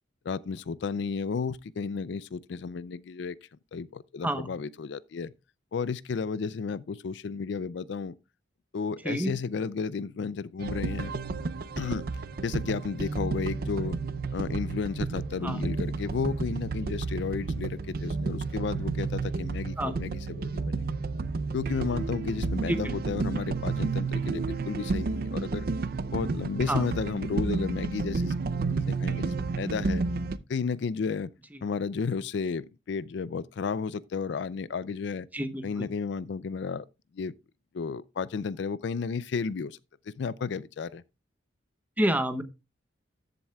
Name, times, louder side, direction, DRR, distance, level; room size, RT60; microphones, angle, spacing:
voice 1, 0.3-3.3 3.7-5.3 5.7-8.2 8.7-11.1 11.8-12.0 12.4-14.0 14.3-20.8 21.5-25.7 26.1-28.4 28.9-30.0 30.5-31.3 31.6-35.3 35.6-36.9 37.1-37.3 37.7-39.8 40.1-41.0, left 5 dB, 70° left, 0.4 m, -33 dB
sound 1, 10.6-30.4, right 3 dB, 55° right, 0.5 m, -31 dB
voice 2, 35.3-35.9 42.0-42.4, right 1 dB, 10° right, 0.8 m, -28 dB
13.5 x 7.6 x 2.3 m
head